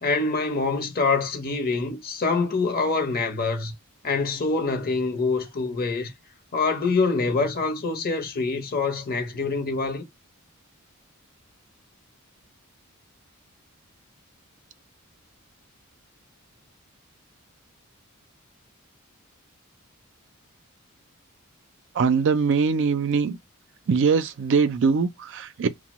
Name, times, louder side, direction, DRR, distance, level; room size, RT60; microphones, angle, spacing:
voice 1, 0.0-3.7 4.0-6.1 6.5-10.0, left 4 dB, 45° left, 0.8 m, -25 dB
voice 2, 22.0-23.4 23.9-25.7, right 5 dB, 60° right, 0.4 m, -22 dB
2.9 x 2.0 x 2.9 m
head